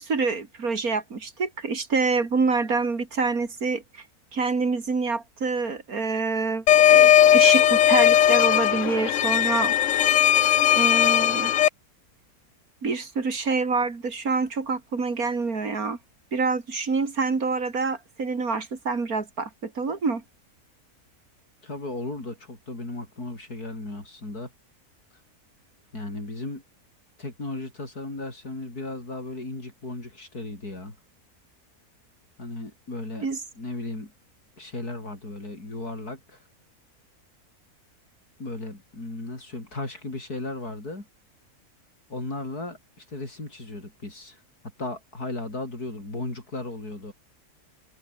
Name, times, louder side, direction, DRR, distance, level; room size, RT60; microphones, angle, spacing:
voice 1, 0.0-4.0 4.3-9.7 10.8-11.5 12.8-16.0 16.3-20.2 33.2-33.4, right 4 dB, 70° right, 3.3 m, -26 dB
sound 1, 6.7-11.7, left 10 dB, 60° left, 1.1 m, -18 dB
voice 2, 21.6-24.5 25.9-26.6 27.2-31.0 32.4-33.3 33.6-34.1 34.6-36.4 38.4-41.1 42.1-44.4 44.8-47.1, left 2 dB, 85° left, 7.1 m, -35 dB
omnidirectional pair, 1.6 m